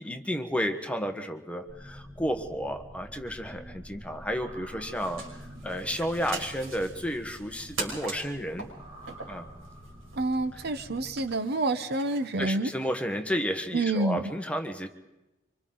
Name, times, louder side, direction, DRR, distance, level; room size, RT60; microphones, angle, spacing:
voice 1, 0.0-8.7 9.3-9.5 10.5-10.6 12.4-14.9, equal, 5° left, 5 dB, 1.2 m, -32 dB
sound 1, 1.7-11.2, equal, 30° right, 4.9 m, -47 dB
sound 2, 4.8-12.4, right 3 dB, 85° right, 5.8 m, -42 dB
voice 2, 10.2-12.7 13.7-14.2, right 2 dB, 55° right, 11 dB, 0.9 m, -28 dB
26.5 x 25.5 x 3.9 m, 1.0 s
head